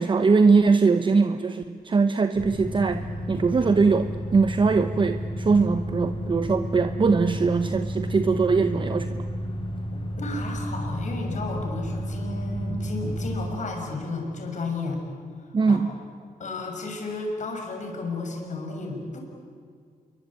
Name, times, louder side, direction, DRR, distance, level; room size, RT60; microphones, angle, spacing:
voice 1, 0.0-9.2 15.5-16.0, right 4 dB, 35° right, 10 dB, 0.9 m, -21 dB
sound 1, 2.3-13.5, equal, 35° left, 4.1 m, -32 dB
voice 2, 9.9-15.0 15.7-15.8 16.4-19.2, left 3 dB, 55° left, 2 dB, 6.5 m, -33 dB
28.0 x 23.5 x 8.7 m, 2.2 s
wide cardioid pair, 130°, 15 cm